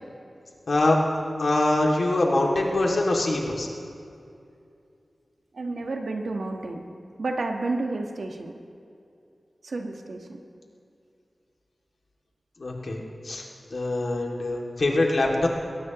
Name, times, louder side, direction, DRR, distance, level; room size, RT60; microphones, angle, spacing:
voice 1, 0.7-1.0 1.4-3.7 12.6-13.4 13.7-15.5, left 2 dB, 70° left, -1 dB, 2.5 m, -23 dB
voice 2, 5.5-6.8 7.2-8.5 9.6-10.4, right 2 dB, 80° right, 2 dB, 1.5 m, -30 dB
21.5 x 18.0 x 3.1 m, 2.5 s
wide cardioid pair, 90°, 0 cm